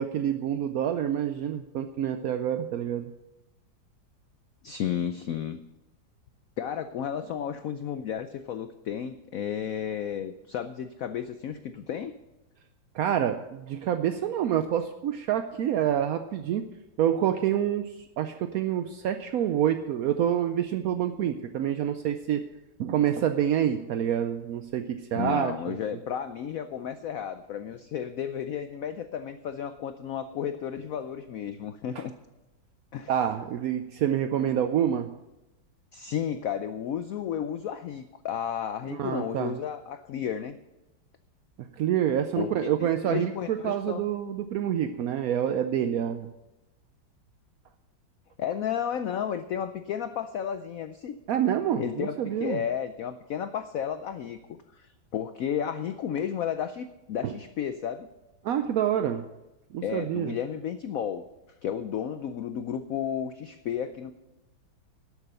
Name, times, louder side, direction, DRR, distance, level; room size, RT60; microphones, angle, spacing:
voice 1, 0.0-3.1 12.9-16.6 17.0-22.4 22.8-25.8 31.9-32.1 33.1-35.1 38.9-39.5 41.6-46.3 51.3-52.6 57.2-57.3 58.4-59.3 59.7-60.3, right 10 dB, 75° right, 8 dB, 0.8 m, -27 dB
voice 2, 4.6-5.6 6.6-12.2 25.1-32.1 32.9-33.1 35.9-40.5 42.4-44.0 48.4-51.2 51.8-58.1 59.8-61.2 61.6-64.1, left 8 dB, 80° left, 10 dB, 0.7 m, -33 dB
12.0 x 8.2 x 6.8 m, 0.98 s
omnidirectional pair, 2.1 m